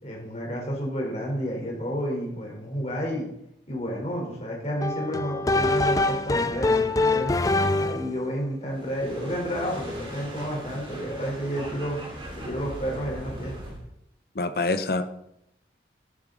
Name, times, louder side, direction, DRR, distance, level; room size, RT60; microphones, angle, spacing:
voice 1, 0.0-3.3 3.7-7.4 7.8-12.0 12.3-13.7, equal, 35° left, -1 dB, 3.5 m, -31 dB
sound 1, 4.8-8.2, left 2 dB, 20° left, 0.4 m, -24 dB
sound 2, 8.6-13.8, right 1 dB, 30° right, 2.5 m, -39 dB
voice 2, 14.3-15.0, left 3 dB, 55° left, 9 dB, 0.8 m, -25 dB
11.0 x 8.9 x 3.8 m, 0.80 s
head